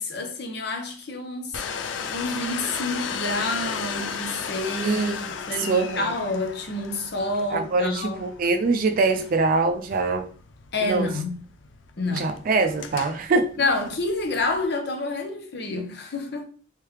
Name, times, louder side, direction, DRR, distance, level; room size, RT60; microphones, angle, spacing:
voice 1, 0.0-1.7 2.1-5.0 5.5-8.2 10.7-11.3 12.0-12.3 13.6-16.4, left 2 dB, 60° left, 0.8 m, -28 dB
Domestic sounds home sounds, 1.5-14.6, left 6 dB, 80° left, 0.4 m, -36 dB
voice 2, 4.8-5.3 5.5-6.1 7.5-10.3 10.8-11.1 12.1-13.5, right 3 dB, 50° right, 0.4 m, -23 dB
3.3 x 3.2 x 3.2 m
head